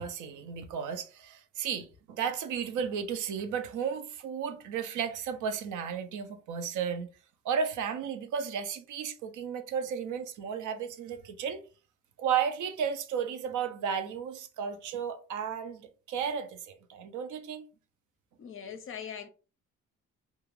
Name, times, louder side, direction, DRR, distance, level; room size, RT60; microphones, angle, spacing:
voice 1, 0.0-7.1 7.4-11.6 12.2-17.7, right 7 dB, 80° right, 0.6 m, -34 dB
voice 2, 18.4-19.3, left 7 dB, 45° left, 0.5 m, -41 dB
2.4 x 2.3 x 3.0 m
cardioid pair, 90°, 30 cm